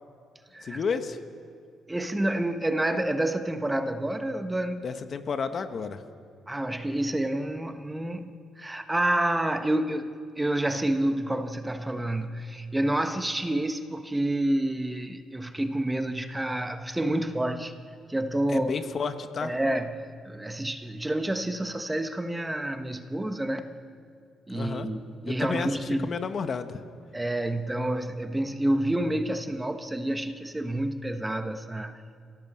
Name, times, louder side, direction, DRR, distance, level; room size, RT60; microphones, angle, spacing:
voice 1, 0.6-1.2 4.8-6.0 18.5-19.5 24.5-24.9 25.3-26.8, left 5 dB, 50° left, 1.5 m, -31 dB
voice 2, 1.9-4.9 6.5-17.7 18.1-18.7 19.4-23.8 24.5-26.2 27.1-32.0, right 1 dB, 10° right, 1.3 m, -29 dB
28.5 x 17.0 x 7.5 m
cardioid pair, 90°, 0 cm